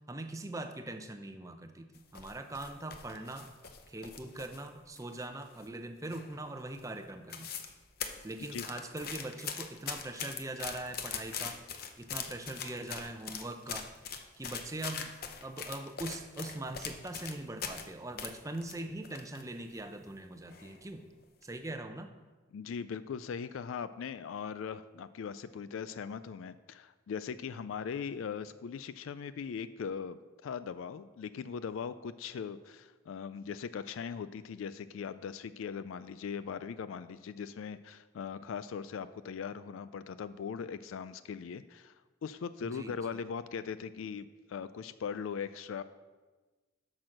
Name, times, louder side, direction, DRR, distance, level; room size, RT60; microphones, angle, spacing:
voice 1, 0.1-3.5 3.9-7.5 8.2-11.6 12.0-13.9 14.4-15.1 15.4-21.0 21.4-22.1 42.6-43.2, right 2 dB, 15° right, 7 dB, 0.6 m, -42 dB
sound 1, 2.0-4.7 5.0-5.8 6.1-6.5 6.8-6.9 7.1-7.7 8.0-17.9 18.2-19.4 19.8-19.9 20.5-20.8 21.2-21.4, left 7 dB, 45° left, 0.7 m, -41 dB
voice 2, 22.5-41.9 42.2-45.8, left 6 dB, 80° left, 14 dB, 0.3 m, -40 dB
8.4 x 6.2 x 6.4 m, 1.3 s
head